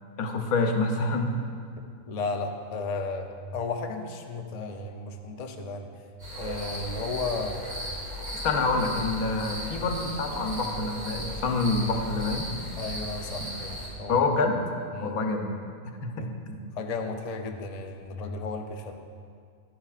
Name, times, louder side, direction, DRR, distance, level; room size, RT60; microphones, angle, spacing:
voice 1, 0.2-1.3 8.4-12.5 14.1-14.6 15.0-15.5 16.0-16.5, left 3 dB, 80° left, 3 dB, 1.3 m, -27 dB
voice 2, 2.1-5.9 6.4-7.6 12.8-14.2 14.9-15.2 16.2-16.3 16.8-18.9, left 3 dB, 60° left, 4 dB, 0.4 m, -34 dB
sound 1, 6.2-13.9, equal, 80° right, 2.9 m, -36 dB
11.5 x 10.0 x 2.4 m, 2.2 s
omnidirectional pair, 1.5 m